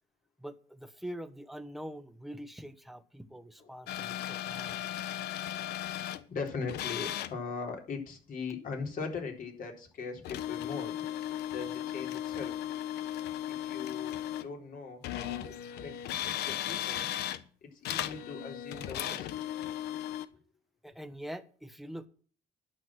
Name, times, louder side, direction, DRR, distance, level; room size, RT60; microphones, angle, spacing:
voice 1, 0.4-4.7 20.8-22.1, equal, ahead, 10 dB, 1.2 m, -44 dB
sound 1, 3.9-6.2 6.7-7.3 10.2-14.5 15.0-17.4 17.8-20.3, left 12 dB, 75° left, 0.9 m, -36 dB
voice 2, 6.3-11.0 11.5-12.6 13.4-16.0 16.2-17.0 17.6-19.3, left 4 dB, 55° left, 2 dB, 4.0 m, -40 dB
11.0 x 6.4 x 7.6 m, 0.42 s
cardioid pair, 110°, 17 cm